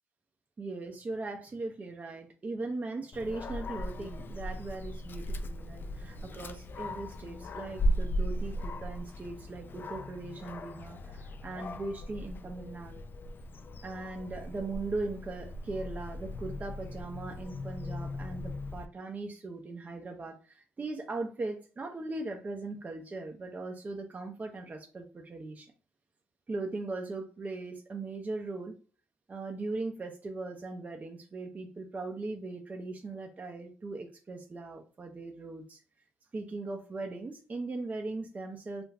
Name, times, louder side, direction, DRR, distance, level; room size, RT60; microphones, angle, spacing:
voice 1, 0.6-13.0 13.8-25.7 26.5-28.8 29.3-35.8 36.3-38.8, right 3 dB, 30° right, 2 dB, 0.5 m, -39 dB
Dog, 3.1-18.9, equal, 45° left, 0.3 m, -37 dB
2.4 x 2.2 x 3.3 m, 0.39 s
supercardioid pair, 60°, 5 cm